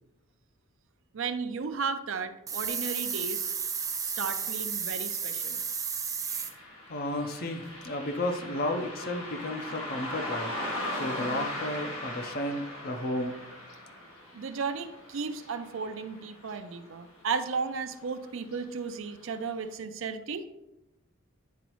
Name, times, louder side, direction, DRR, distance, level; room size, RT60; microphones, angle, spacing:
voice 1, 1.1-3.5 4.0-5.6 14.3-20.5, right 5 dB, 70° right, 9 dB, 0.5 m, -34 dB
sound 1, 2.5-6.5, right 6 dB, 15° right, 0.5 m, -33 dB
Car passing by, 6.3-17.1 17.4-17.5 18.4-18.6 19.1-19.2 19.7-19.8, left 1 dB, 85° left, 1.7 m, -39 dB
voice 2, 6.9-13.3, left 1 dB, 45° left, 6 dB, 0.7 m, -33 dB
9.3 x 4.0 x 3.1 m, 0.93 s
head